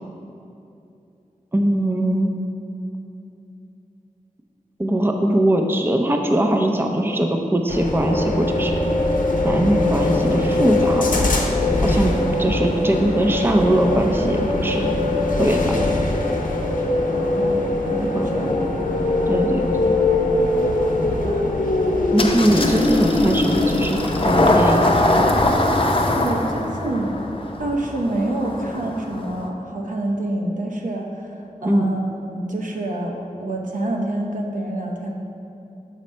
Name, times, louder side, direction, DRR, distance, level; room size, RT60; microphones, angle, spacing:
voice 1, 1.5-2.4 4.8-8.8 9.4-11.3 11.8-12.1 12.4-14.9 15.4-15.9 18.1-18.3 19.3-19.9 22.1-25.0 31.7-31.9, right 1 dB, 15° right, 3 dB, 0.5 m, -21 dB
sound 1, 7.7-25.5, left 2 dB, 85° left, 0.7 m, -22 dB
voice 2, 17.1-18.8 20.9-21.6 26.1-27.1 27.6-35.1, right 1 dB, 75° right, 0 dB, 0.8 m, -27 dB
Engine starting, 22.2-29.5, left 1 dB, 45° left, 0.6 m, -21 dB
6.3 x 5.1 x 4.3 m, 2.7 s
wide cardioid pair, 70°, 13 cm